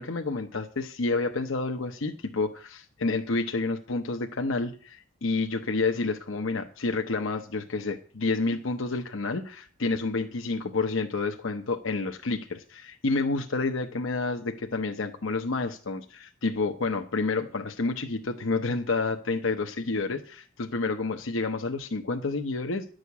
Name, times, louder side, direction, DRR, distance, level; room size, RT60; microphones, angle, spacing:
voice 1, 0.0-22.9, left 3 dB, 70° left, 4 dB, 0.9 m, -29 dB
11.0 x 6.4 x 8.4 m, 0.42 s
head